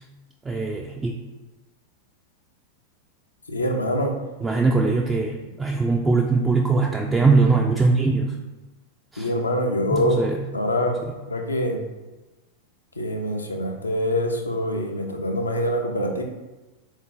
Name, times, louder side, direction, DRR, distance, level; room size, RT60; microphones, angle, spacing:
voice 1, 0.5-1.1 4.4-8.4 9.1-9.3 9.9-10.4, right 3 dB, 15° right, -1 dB, 0.3 m, -21 dB
voice 2, 3.5-4.1 9.2-10.2 10.5-11.0 11.3-11.8 13.0-16.2, equal, 80° left, 2 dB, 0.5 m, -24 dB
3.8 x 2.7 x 3.7 m, 1.1 s
figure-of-eight pair, 90°, 0 cm